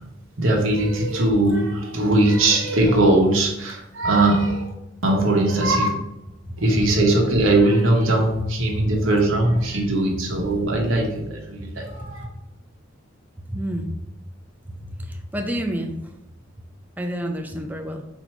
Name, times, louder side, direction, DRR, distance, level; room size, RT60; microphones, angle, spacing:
voice 1, 0.4-4.7 5.0-5.9 6.6-12.2, right 2 dB, 85° right, 0 dB, 1.0 m, -20 dB
voice 2, 13.5-14.0 14.7-15.9 17.0-18.1, equal, 10° right, 4 dB, 0.4 m, -29 dB
4.4 x 2.7 x 4.3 m, 0.87 s
head